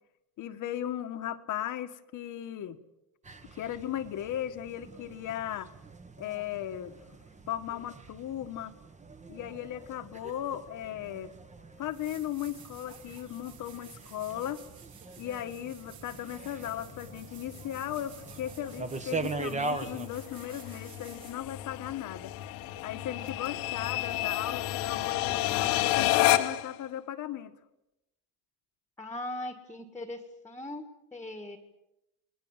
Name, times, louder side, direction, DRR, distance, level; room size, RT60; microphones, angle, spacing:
voice 1, 0.4-2.8 3.5-5.7 6.2-7.2 7.5-8.7 9.3-11.4 11.8-14.6 15.2-22.3 22.8-27.5, left 11 dB, 50° left, 9 dB, 1.5 m, -37 dB
sound 1, 3.2-20.1, right 3 dB, 15° right, 1.5 m, -42 dB
sound 2, 11.3-11.4 11.8-21.6 24.3-24.4, right 8 dB, 65° right, 7.4 m, -54 dB
sound 3, 16.5-26.7, left 15 dB, 80° left, 1.6 m, -31 dB
voice 2, 29.0-31.6, left 1 dB, 5° left, 7 dB, 1.8 m, -40 dB
29.0 x 21.0 x 7.4 m, 0.91 s
cardioid pair, 140°, 40 cm